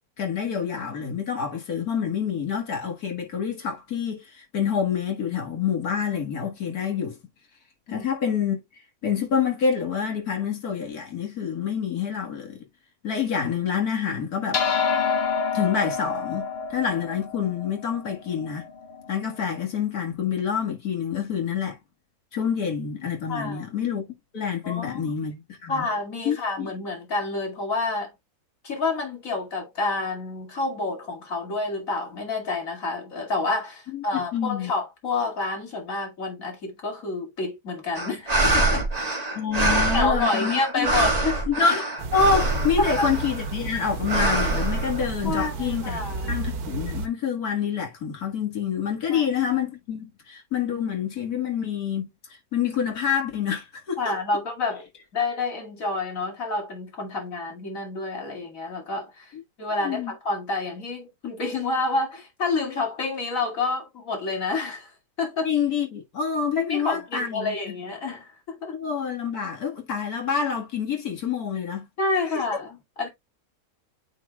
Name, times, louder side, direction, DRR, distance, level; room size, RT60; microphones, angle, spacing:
voice 1, 0.2-7.2 7.9-8.6 9.0-12.6 13.0-14.6 15.5-18.7 19.1-21.8 22.3-24.0 24.3-25.9 26.3-26.7 33.9-34.7 39.3-40.9 41.5-52.1 52.5-54.2 59.8-60.1 65.4-67.6 68.7-71.9, left 7 dB, 80° left, 2.3 m, -27 dB
sound 1, 14.5-19.2, left 5 dB, 45° left, 1.3 m, -28 dB
voice 2, 23.3-23.7 24.6-25.1 25.7-28.1 28.6-38.8 39.9-41.4 42.8-43.1 45.2-46.4 49.1-49.2 54.0-54.8 55.1-59.3 59.6-64.9 65.2-65.5 66.6-68.8 72.0-73.1, left 3 dB, 60° left, 2.8 m, -28 dB
sound 2, 37.9-43.5 44.1-45.5, right 2 dB, 25° right, 1.7 m, -25 dB
sound 3, 42.0-47.1, right 3 dB, 90° right, 1.5 m, -32 dB
9.2 x 4.6 x 2.3 m
omnidirectional pair, 1.6 m